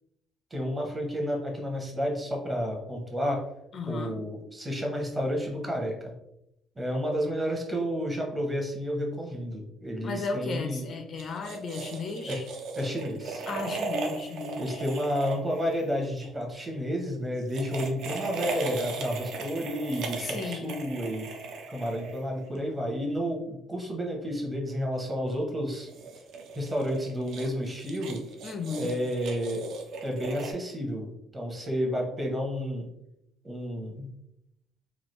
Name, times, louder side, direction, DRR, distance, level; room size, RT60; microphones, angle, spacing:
voice 1, 0.5-3.4 3.9-6.1 6.8-10.9 12.3-12.4 12.8-13.4 14.6-21.3 21.7-25.9 26.5-28.2 28.8-29.6 30.0-32.9 33.4-34.1, equal, 15° right, 1 dB, 0.7 m, -31 dB
voice 2, 3.7-4.2 10.0-12.5 13.5-14.8 20.2-20.8 28.4-29.0, left 4 dB, 40° left, 4 dB, 0.4 m, -35 dB
sound 1, 11.2-16.3 17.4-22.6 25.7-30.5, right 3 dB, 65° right, 0.5 m, -37 dB
3.1 x 2.3 x 3.0 m, 0.81 s
cardioid pair, 145°, 0 cm